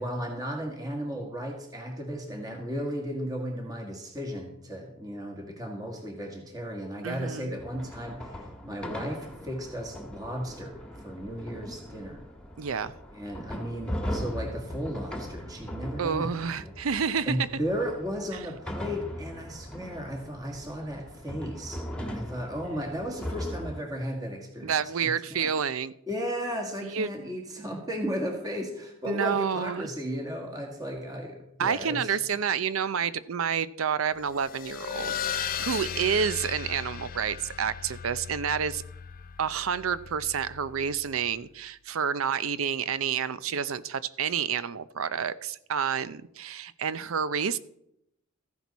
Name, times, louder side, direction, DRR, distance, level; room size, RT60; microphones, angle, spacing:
voice 1, 0.0-12.2 13.1-16.3 16.6-16.7 17.2-25.5 26.1-32.4, equal, 20° right, 2 dB, 1.8 m, -35 dB
voice 2, 7.0-7.6 12.6-12.9 16.0-17.5 24.6-25.9 26.9-27.1 29.1-29.9 31.6-38.8 39.4-47.6, right 7 dB, 85° right, 16 dB, 0.6 m, -29 dB
sound 1, 7.6-23.8, equal, 5° left, 1.5 m, -39 dB
sound 2, 34.2-41.3, left 8 dB, 45° left, 0.5 m, -37 dB
14.5 x 10.5 x 4.1 m, 0.79 s
head